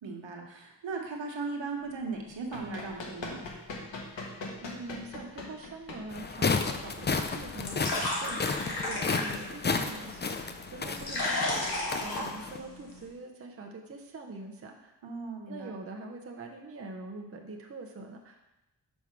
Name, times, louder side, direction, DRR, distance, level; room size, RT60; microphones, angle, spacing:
voice 1, 0.0-3.4 15.0-15.7, right 4 dB, 90° right, 1 dB, 1.2 m, -37 dB
Run, 2.2-8.6, left 2 dB, 90° left, 1.2 m, -43 dB
voice 2, 4.6-14.9 15.5-18.5, right 3 dB, 30° right, 1 dB, 0.7 m, -44 dB
sound 1, 6.1-12.6, left 4 dB, 25° left, 0.3 m, -32 dB
sound 2, 7.1-13.1, left 2 dB, 55° left, 1.7 m, -35 dB
5.4 x 4.8 x 5.9 m, 0.93 s
wide cardioid pair, 150°, 44 cm